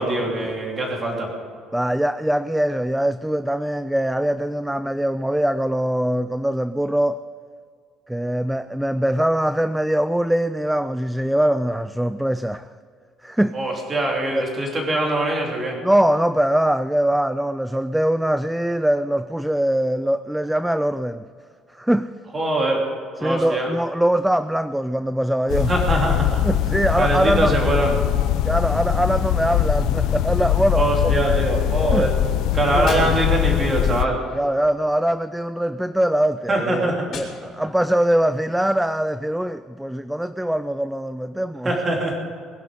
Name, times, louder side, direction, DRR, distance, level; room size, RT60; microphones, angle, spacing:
voice 1, 0.0-1.3 13.5-15.8 22.3-22.9 23.2-23.7 25.7-26.4 27.0-27.9 30.8-32.1 32.5-34.2 36.5-37.1 41.6-42.2, right 1 dB, 20° right, 3.2 m, -22 dB
voice 2, 1.7-7.2 8.1-12.7 13.2-13.6 14.3-14.5 15.8-21.3 21.7-22.1 23.2-25.7 26.4-27.6 28.4-31.1 31.9-32.1 32.7-33.2 34.3-41.7, right 1 dB, 5° right, 0.3 m, -22 dB
sound 1, 25.5-34.0, left 10 dB, 65° left, 0.7 m, -22 dB
Gunshot gunfire, 29.9-30.9 32.9-35.2 37.1-38.1, left 4 dB, 45° left, 3.8 m, -38 dB
21.0 x 11.0 x 5.1 m
cardioid pair, 165°, 0 cm